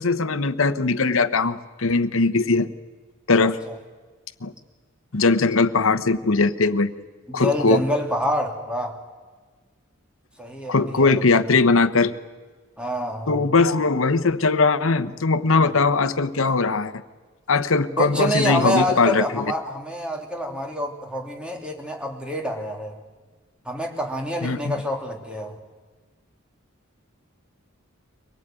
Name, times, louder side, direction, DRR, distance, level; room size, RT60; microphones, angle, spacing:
voice 1, 0.0-2.7 3.3-3.6 4.4-4.5 5.1-7.0 7.3-7.8 10.7-12.1 13.3-16.9 17.5-19.4 24.4-24.8, left 3 dB, 70° left, 12 dB, 1.0 m, -20 dB
voice 2, 3.4-3.7 7.3-9.0 10.4-11.1 12.8-13.4 15.6-15.7 18.0-23.0 23.6-25.6, equal, 5° right, 2 dB, 2.8 m, -27 dB
24.5 x 18.5 x 9.1 m, 1.4 s
head